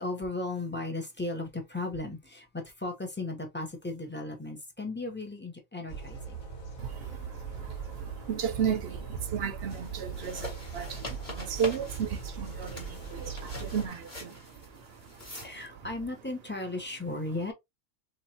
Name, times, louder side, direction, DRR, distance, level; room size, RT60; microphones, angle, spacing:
voice 1, 0.0-6.4 12.9-13.1 15.2-17.5, left 2 dB, 10° left, 0.6 m, -36 dB
sound 1, 5.9-13.9, right 5 dB, 85° left, 1.9 m, -40 dB
voice 2, 6.8-15.6, right 7 dB, 60° right, 0.7 m, -35 dB
sound 2, 9.7-15.6, left 2 dB, 30° left, 1.5 m, -44 dB
3.6 x 3.0 x 2.7 m
omnidirectional pair, 1.4 m